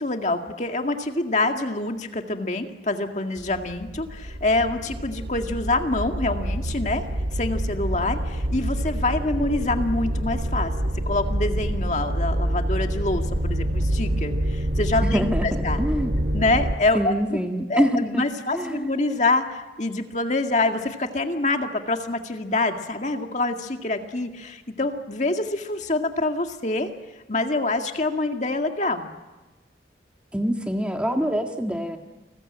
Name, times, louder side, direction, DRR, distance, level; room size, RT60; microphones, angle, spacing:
voice 1, 0.0-7.0 7.3-10.7 11.1-15.8 16.3-17.4 17.7-26.9 27.3-29.1, left 2 dB, 40° left, 4 dB, 2.0 m, -26 dB
sound 1, 3.4-16.8, right 1 dB, 70° right, 1.8 m, -27 dB
voice 2, 15.0-16.1 16.9-18.2 18.5-18.9 30.3-32.0, equal, 5° right, 3 dB, 1.8 m, -25 dB
30.0 x 20.5 x 8.8 m, 1.1 s
head